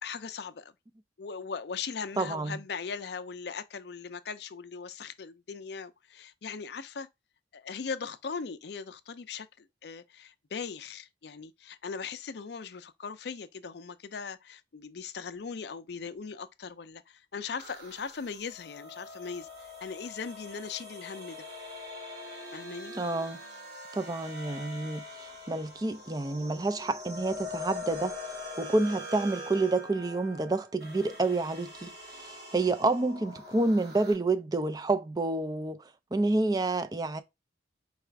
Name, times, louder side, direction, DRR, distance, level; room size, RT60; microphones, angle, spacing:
voice 1, 0.0-0.7 1.2-7.1 7.5-21.4 22.5-22.9, left 5 dB, 60° left, 0.5 m, -39 dB
voice 2, 2.2-2.6 22.9-23.4 23.9-28.2 28.6-35.8 36.1-37.2, right 2 dB, 20° right, 0.4 m, -29 dB
sound 1, 17.6-34.1, left 2 dB, 55° right, 2.2 m, -43 dB
4.8 x 2.4 x 4.4 m
head